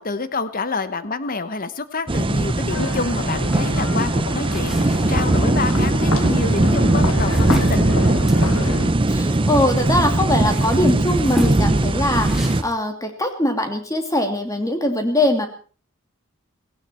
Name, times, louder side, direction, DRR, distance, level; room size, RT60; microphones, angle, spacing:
voice 1, 0.0-7.8, left 3 dB, 45° left, 13 dB, 1.1 m, -28 dB
sound 1, 2.1-12.6, right 2 dB, 25° right, 0.7 m, -19 dB
sound 2, 2.7-8.9, left 3 dB, 80° left, 1.5 m, -30 dB
sound 3, 4.5-9.7 10.2-12.7, left 1 dB, ahead, 3.0 m, -32 dB
voice 2, 9.1-15.5, left 1 dB, 15° left, 5 dB, 2.8 m, -21 dB
17.5 x 16.5 x 4.5 m, 0.39 s
head